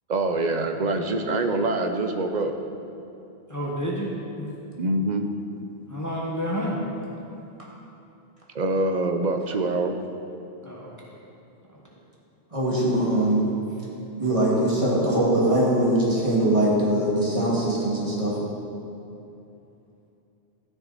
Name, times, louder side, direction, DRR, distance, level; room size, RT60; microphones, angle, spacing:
voice 1, 0.1-2.5 4.8-5.3 8.5-9.9, right 2 dB, 45° right, 5 dB, 0.9 m, -25 dB
voice 2, 3.5-4.1 4.4-4.5 5.9-6.8 10.6-11.2 11.7-11.8, equal, 15° left, -4 dB, 1.3 m, -30 dB
voice 3, 12.5-13.4 14.2-18.3, right 1 dB, 30° right, -6 dB, 2.4 m, -22 dB
13.5 x 10.0 x 4.1 m, 2.8 s
omnidirectional pair, 1.1 m